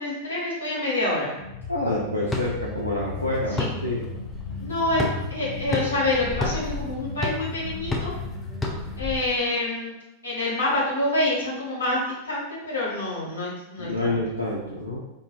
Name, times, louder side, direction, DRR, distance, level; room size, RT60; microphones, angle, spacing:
voice 1, 0.0-1.3 3.5-3.7 4.6-5.0 5.3-8.1 9.0-9.9 10.2-14.1, left 2 dB, 70° left, -5 dB, 0.9 m, -27 dB
Brown Noise Ambience, 1.3-9.1, left 4 dB, 40° left, 1.2 m, -36 dB
voice 2, 1.7-4.0 13.8-15.0, left 1 dB, 90° left, -5 dB, 0.3 m, -27 dB
sound 1, 2.3-9.1, left 2 dB, 10° left, 0.4 m, -33 dB
2.5 x 2.2 x 2.4 m, 0.92 s
figure-of-eight pair, 90°, 0 cm